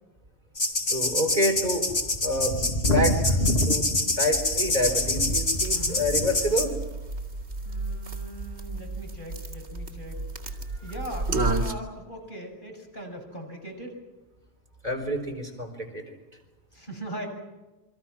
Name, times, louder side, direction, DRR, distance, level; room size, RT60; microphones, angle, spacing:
sound 1, 0.6-6.7, left 2 dB, 65° left, 2.9 m, -25 dB
voice 1, 0.9-1.9 2.2-3.4 3.7-3.9 4.2-6.7 10.8-10.9 14.8-16.0, equal, 40° right, 4 dB, 4.4 m, -27 dB
sound 2, 4.3-11.7, right 2 dB, 80° right, 3.1 m, -33 dB
voice 2, 5.7-6.1 7.6-10.2 10.8-14.0 16.7-17.3, right 1 dB, 50° left, 2 dB, 7.0 m, -40 dB
28.5 x 24.5 x 6.0 m, 1.1 s
omnidirectional pair, 1.1 m